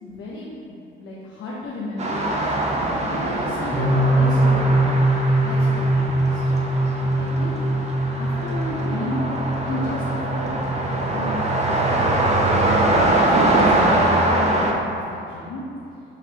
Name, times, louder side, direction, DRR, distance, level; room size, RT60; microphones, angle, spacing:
voice 1, 0.0-6.4 7.0-7.6 8.2-15.6, left 2 dB, 80° left, -5 dB, 0.7 m, -33 dB
sound 1, 2.0-14.7, right 1 dB, 35° right, 0.6 m, -22 dB
sound 2, 3.7-12.1, right 1 dB, ahead, 0.9 m, -22 dB
4.6 x 3.3 x 3.4 m, 2.7 s
cardioid pair, 90°, 20 cm